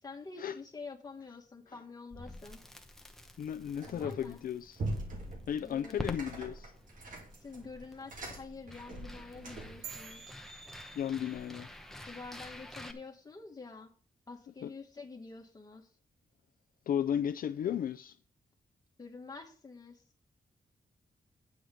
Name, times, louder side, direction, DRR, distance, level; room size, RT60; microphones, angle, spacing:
voice 1, 0.0-2.6 3.9-4.4 5.6-6.2 7.4-10.2 12.0-13.9 14.3-15.9 19.0-20.0, left 4 dB, 25° left, 1.6 m, -47 dB
Crackle, 2.1-12.9, left 1 dB, ahead, 0.9 m, -48 dB
voice 2, 3.4-4.8 5.5-6.7 10.9-11.7 14.6-14.7 16.9-18.2, left 9 dB, 65° left, 0.4 m, -34 dB
sound 1, 3.8-4.3 4.8-9.9, right 2 dB, 60° right, 2.5 m, -42 dB
sound 2, 9.8-11.6, right 9 dB, 85° right, 0.6 m, -50 dB
9.5 x 4.9 x 7.6 m
wide cardioid pair, 170°, 16 cm